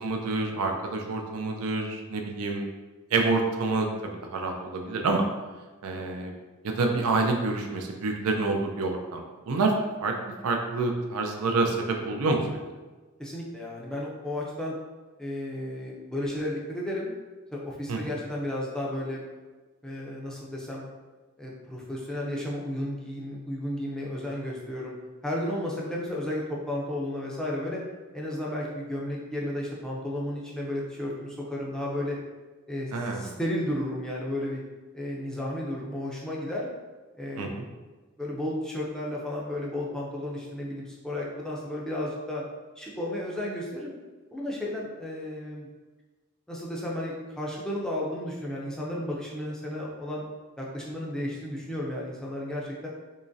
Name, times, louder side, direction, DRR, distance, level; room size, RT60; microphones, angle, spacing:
voice 1, 0.0-2.7 3.1-5.2 5.8-6.3 6.6-9.7 10.0-10.1 10.4-12.6 17.9-18.0 32.9-33.4 37.4-37.7, right 3 dB, 75° right, 2 dB, 0.4 m, -27 dB
voice 2, 13.2-14.8 15.2-17.1 17.5-19.2 19.8-20.8 21.4-24.9 25.2-27.8 28.1-32.2 32.7-34.6 34.9-36.7 37.2-37.5 38.2-42.4 42.8-43.9 44.3-45.7 46.5-50.2 50.6-52.9, left 1 dB, 5° left, -4 dB, 0.5 m, -33 dB
3.7 x 3.0 x 2.6 m, 1.3 s
head